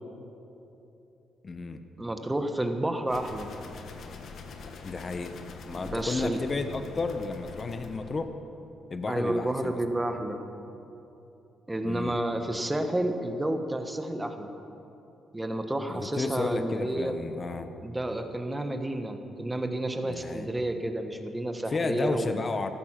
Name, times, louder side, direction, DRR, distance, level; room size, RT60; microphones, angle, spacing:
voice 1, 1.4-1.8 4.8-8.3 8.9-9.8 11.8-12.2 15.9-17.7 20.1-20.5 21.7-22.7, left 3 dB, 35° left, 8 dB, 1.0 m, -32 dB
voice 2, 2.0-3.5 5.8-6.4 9.1-10.4 11.7-14.5 15.3-17.1 17.8-22.3, right 1 dB, 10° right, 6 dB, 1.4 m, -30 dB
sound 1, 3.1-8.2, left 4 dB, 65° left, 1.5 m, -44 dB
14.0 x 13.5 x 5.9 m, 2.9 s
cardioid pair, 90°, 0 cm